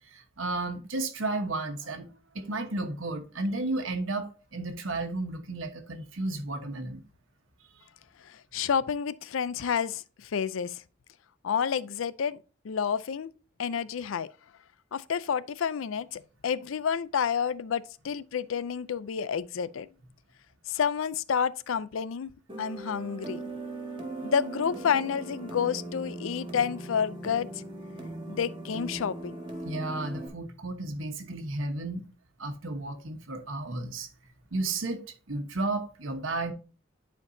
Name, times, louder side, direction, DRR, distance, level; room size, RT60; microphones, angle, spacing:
voice 1, 0.0-2.1 2.3-7.0 29.6-32.0 32.4-34.1 34.5-36.5, right 2 dB, 85° right, 1.2 m, -33 dB
voice 2, 8.3-10.8 11.4-12.4 12.6-13.3 13.6-14.3 14.9-19.9 20.7-22.3 22.6-23.4 24.2-27.5 28.3-29.4, left 7 dB, 85° left, 0.4 m, -29 dB
sound 1, 22.5-30.3, right 2 dB, 25° right, 1.7 m, -39 dB
10.5 x 4.5 x 2.7 m
head